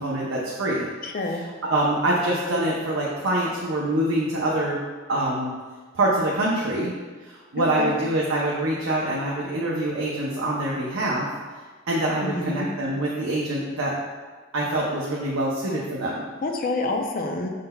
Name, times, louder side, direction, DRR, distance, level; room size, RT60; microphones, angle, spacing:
voice 1, 0.0-0.9 1.6-4.8 5.1-5.5 5.9-6.9 7.3-11.3 11.9-13.9 14.5-16.2, right 1 dB, 85° right, -5 dB, 0.6 m, -25 dB
voice 2, 1.0-1.4 7.6-8.0 12.2-12.7 16.4-17.5, left 2 dB, 45° left, 3 dB, 0.4 m, -28 dB
5.3 x 3.8 x 2.2 m, 1.4 s
head